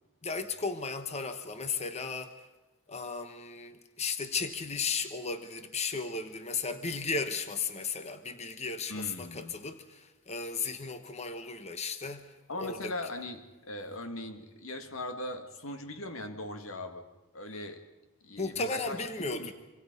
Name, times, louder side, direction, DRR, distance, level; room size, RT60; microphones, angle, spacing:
voice 1, 0.2-2.4 2.9-12.9 18.4-19.5, left 4 dB, 35° left, 1.2 m, -35 dB
voice 2, 8.9-9.6 12.5-17.0 17.3-17.8 18.2-19.0 19.3-19.5, left 1 dB, 85° left, 2.1 m, -39 dB
26.0 x 25.5 x 5.4 m
head